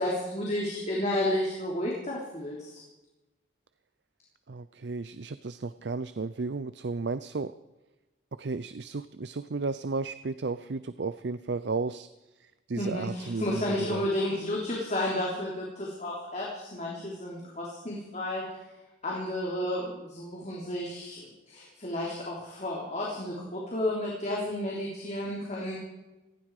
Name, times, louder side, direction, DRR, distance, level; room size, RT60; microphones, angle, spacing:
voice 1, 0.0-2.8 12.8-18.5 19.0-25.8, left 1 dB, 40° left, -3 dB, 3.5 m, -32 dB
voice 2, 4.5-7.5 8.4-12.1 12.7-14.1, right 3 dB, 65° right, 14 dB, 0.6 m, -33 dB
19.0 x 15.5 x 4.8 m, 1.1 s
head